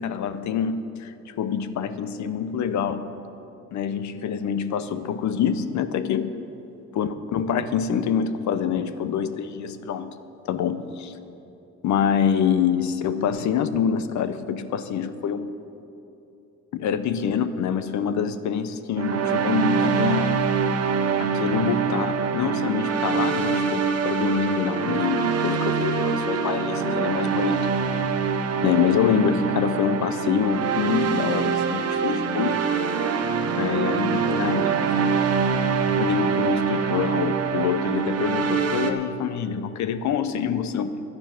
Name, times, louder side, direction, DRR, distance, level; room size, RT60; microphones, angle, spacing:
voice 1, 0.0-3.1 3.7-6.4 6.9-10.2 10.5-11.1 11.8-15.5 16.7-20.3 21.2-27.8 28.6-32.6 33.6-34.9 35.9-41.0, left 7 dB, 70° left, 12 dB, 0.7 m, -26 dB
sound 1, 19.0-38.9, right 6 dB, 55° right, 0.9 m, -24 dB
11.0 x 9.7 x 6.0 m, 2.9 s
cardioid pair, 90°, 30 cm